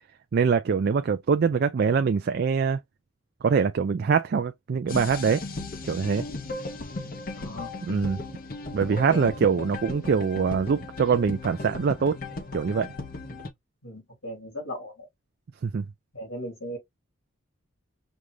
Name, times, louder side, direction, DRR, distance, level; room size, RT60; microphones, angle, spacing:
voice 1, 0.3-2.8 3.4-5.4 5.8-6.2 7.9-8.2 8.7-12.2 12.5-12.9 15.6-15.8, right 6 dB, 50° right, 0.3 m, -23 dB
sound 1, 4.9-13.5, left 2 dB, 40° left, 0.7 m, -36 dB
voice 2, 7.3-7.7 8.7-9.7 13.3-13.4 13.8-15.1 16.1-16.8, equal, 75° left, 3.0 m, -38 dB
5.2 x 2.3 x 3.1 m
head